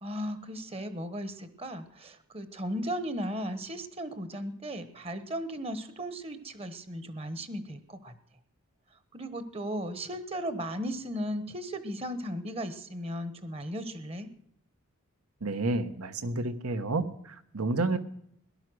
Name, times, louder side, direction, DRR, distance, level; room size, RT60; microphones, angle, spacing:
voice 1, 0.0-8.1 9.1-14.3, equal, 25° right, 12 dB, 1.0 m, -36 dB
voice 2, 15.4-18.0, right 2 dB, 80° right, 11 dB, 1.2 m, -30 dB
17.5 x 11.5 x 6.3 m, 0.71 s
head